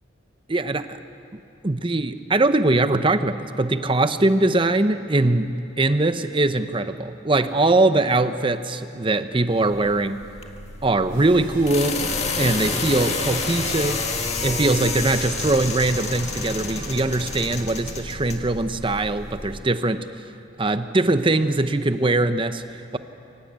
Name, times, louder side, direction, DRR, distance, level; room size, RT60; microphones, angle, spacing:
voice 1, 0.5-1.0 1.6-10.2 10.8-12.0 12.4-14.1 14.4-20.1 20.6-23.0, right 2 dB, 25° right, 11 dB, 0.8 m, -21 dB
sound 1, 9.5-19.6, left 4 dB, 35° left, 1.8 m, -30 dB
sound 2, 11.1-18.2, right 1 dB, 45° right, 6.4 m, -40 dB
23.5 x 19.0 x 8.2 m, 2.7 s
head